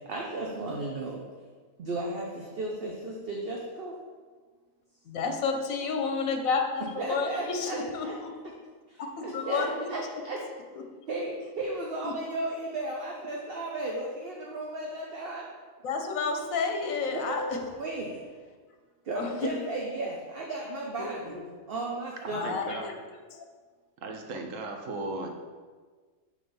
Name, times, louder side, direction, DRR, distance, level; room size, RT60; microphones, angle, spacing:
voice 1, 0.1-1.2 1.8-3.9 7.0-8.2 8.9-10.4 11.1-15.4 17.1-18.2 19.0-21.4 21.7-22.5, right 2 dB, 50° right, -1 dB, 0.8 m, -34 dB
voice 2, 5.1-8.3 9.1-9.9 12.0-12.1 15.8-17.6 19.2-19.6 21.0-21.4 22.3-22.9 23.3-23.4, left 4 dB, 75° left, 4 dB, 1.2 m, -31 dB
voice 3, 22.2-22.9 24.0-25.3, right 2 dB, 70° right, 3 dB, 1.2 m, -36 dB
7.1 x 3.4 x 5.4 m, 1.5 s
omnidirectional pair, 1.4 m